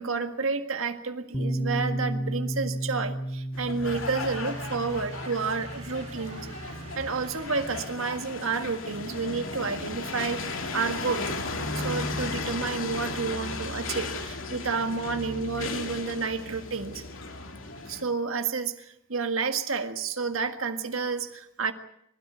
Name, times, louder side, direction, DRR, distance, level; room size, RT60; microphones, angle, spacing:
voice 1, 0.0-6.5 7.0-11.3 11.7-17.0 17.9-21.7, right 4 dB, 80° right, 7 dB, 1.7 m, -30 dB
Piano, 1.3-8.8, right 1 dB, 15° left, 1.3 m, -34 dB
sound 1, 3.5-18.0, left 3 dB, 75° left, 2.6 m, -35 dB
sound 2, 3.9-8.6, right 3 dB, 35° right, 3.1 m, -48 dB
25.0 x 13.5 x 9.2 m, 0.75 s
head